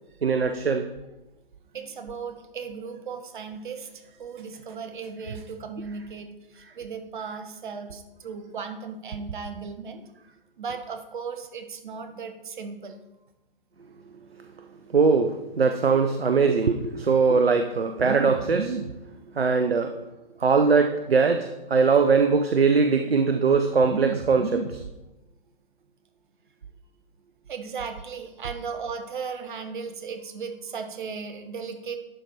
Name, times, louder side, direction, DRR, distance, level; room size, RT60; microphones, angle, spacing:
voice 1, 0.2-0.9 14.9-18.9 19.4-19.9 20.4-24.8, right 5 dB, 85° right, 7 dB, 0.7 m, -21 dB
voice 2, 1.7-6.3 6.8-10.0 10.6-13.0 27.5-32.0, right 5 dB, 55° right, 7 dB, 1.3 m, -36 dB
11.0 x 4.5 x 4.2 m, 1.0 s
figure-of-eight pair, 125°, 29 cm